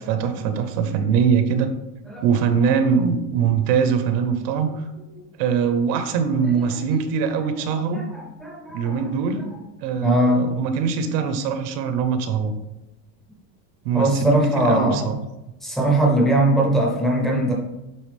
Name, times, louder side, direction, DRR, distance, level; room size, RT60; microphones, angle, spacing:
voice 1, 0.0-1.7 2.2-4.8 5.4-8.0 8.7-9.5 9.8-12.5 13.8-15.2, right 6 dB, 75° right, 9 dB, 0.9 m, -22 dB
voice 2, 7.9-9.1 10.0-10.5 13.9-15.2 15.6-17.5, right 1 dB, ahead, -1 dB, 0.5 m, -20 dB
8.7 x 3.5 x 3.4 m, 0.98 s
cardioid pair, 160°, 49 cm